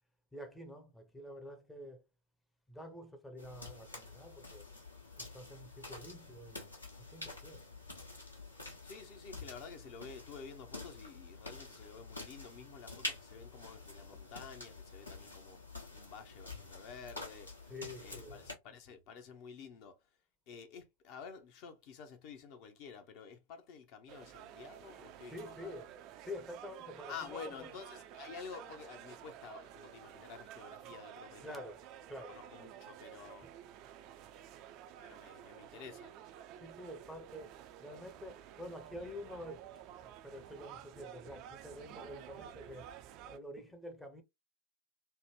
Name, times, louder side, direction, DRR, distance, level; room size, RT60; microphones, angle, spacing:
voice 1, 0.3-2.0 2.7-4.7 5.2-6.7 7.1-7.7 14.1-14.2 17.7-18.5 24.2-24.3 25.2-27.8 30.8-31.0 31.4-32.4 33.4-33.5 36.6-42.9 43.2-44.2, left 1 dB, 5° left, 0.6 m, -48 dB
sound 1, 3.4-18.5, left 2 dB, 85° left, 1.1 m, -48 dB
voice 2, 8.8-15.6 15.9-17.5 18.0-20.0 20.5-25.8 27.1-31.6 32.3-33.5 35.0-36.1, left 6 dB, 45° left, 0.6 m, -50 dB
sound 2, 24.1-43.4, right 10 dB, 40° right, 0.4 m, -52 dB
3.3 x 2.1 x 2.9 m
figure-of-eight pair, 90°, 0 cm